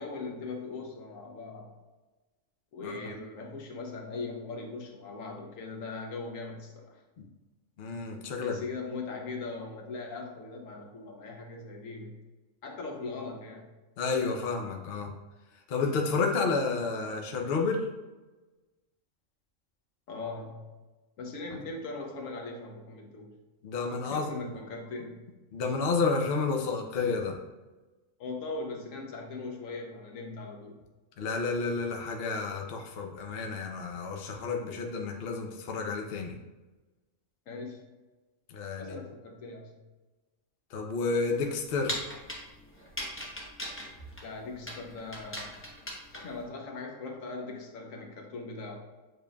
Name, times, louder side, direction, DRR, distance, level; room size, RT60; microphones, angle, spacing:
voice 1, 0.0-1.7 2.7-7.0 8.4-12.1 12.6-13.7 20.1-20.7 21.2-23.3 24.0-25.2 28.2-30.8 37.5-37.8 38.8-39.8 44.2-45.6 46.1-48.8, left 3 dB, 80° left, 2 dB, 1.1 m, -40 dB
voice 2, 7.8-8.6 14.0-15.1 15.7-17.8 23.6-24.5 25.5-27.4 31.2-36.3 38.5-39.0 40.7-42.0, left 4 dB, 55° left, 2 dB, 0.8 m, -30 dB
sound 1, 41.3-46.4, equal, 15° left, 0.5 m, -39 dB
7.0 x 3.2 x 2.3 m, 1.2 s
omnidirectional pair, 1.4 m